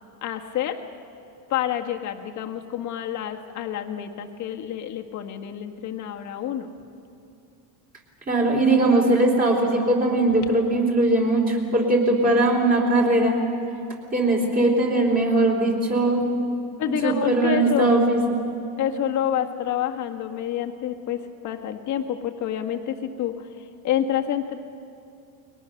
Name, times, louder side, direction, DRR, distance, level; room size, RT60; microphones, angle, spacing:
voice 1, 0.2-0.8 1.5-6.7 16.8-17.9 18.8-23.5 23.8-24.6, left 10 dB, 45° left, 4 dB, 1.8 m, -28 dB
voice 2, 8.3-13.4 14.1-16.3 17.0-18.2, right 2 dB, 20° right, 0 dB, 3.6 m, -20 dB
30.0 x 23.0 x 6.6 m, 2.6 s
cardioid pair, 165°, 41 cm